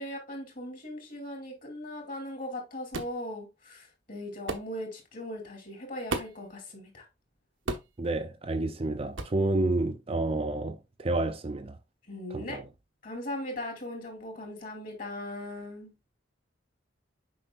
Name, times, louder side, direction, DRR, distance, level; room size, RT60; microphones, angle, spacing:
voice 1, 0.0-7.0 12.1-12.6 13.0-15.9, left 1 dB, 45° left, 2.7 m, -39 dB
sound 1, 2.9-3.2 4.5-4.7 6.1-6.5 7.7-8.0 9.2-9.4, right 3 dB, 90° right, 1.1 m, -34 dB
voice 2, 8.0-11.8 12.3-12.6, right 2 dB, 30° right, 0.5 m, -30 dB
7.6 x 5.3 x 2.4 m
head